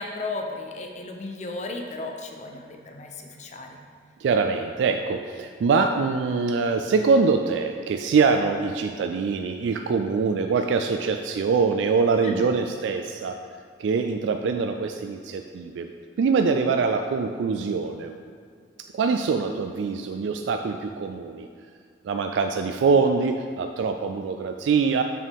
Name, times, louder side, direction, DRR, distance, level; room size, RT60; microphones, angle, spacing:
voice 1, 0.0-3.8 12.2-12.5, left 2 dB, 40° left, 3 dB, 0.6 m, -34 dB
voice 2, 4.2-13.4 13.8-15.9 16.2-18.2 18.9-21.5 22.0-25.0, right 5 dB, 80° right, 6 dB, 0.3 m, -24 dB
6.6 x 6.2 x 3.5 m, 2.1 s
head